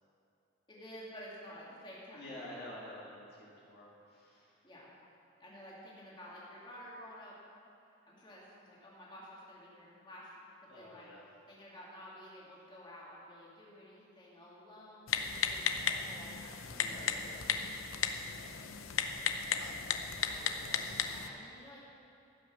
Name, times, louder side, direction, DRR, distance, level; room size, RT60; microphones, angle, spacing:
voice 1, 0.7-2.5 4.6-4.9 5.4-7.4 7.8-10.5 10.7-11.1 11.5-17.1 20.1-21.8, equal, 25° left, -6 dB, 2.3 m, -52 dB
voice 2, 2.1-4.6 10.7-11.3 16.7-18.3, left 1 dB, 50° left, -6 dB, 1.9 m, -50 dB
Typing, 15.1-21.3, left 7 dB, 85° left, 0.7 m, -35 dB
14.5 x 6.3 x 6.2 m, 2.7 s
head